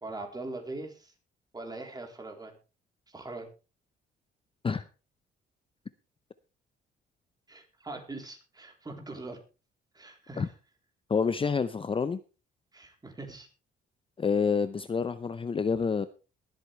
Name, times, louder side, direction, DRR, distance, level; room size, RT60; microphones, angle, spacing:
voice 1, 0.0-1.1 1.5-2.6 3.1-3.5 7.5-9.4 9.9-10.5 12.7-13.5, right 2 dB, 20° right, 3 dB, 3.7 m, -41 dB
voice 2, 11.1-12.2 14.2-16.1, left 5 dB, 25° left, 13 dB, 0.6 m, -28 dB
21.5 x 8.1 x 3.3 m, 0.32 s
cardioid pair, 90°, 20 cm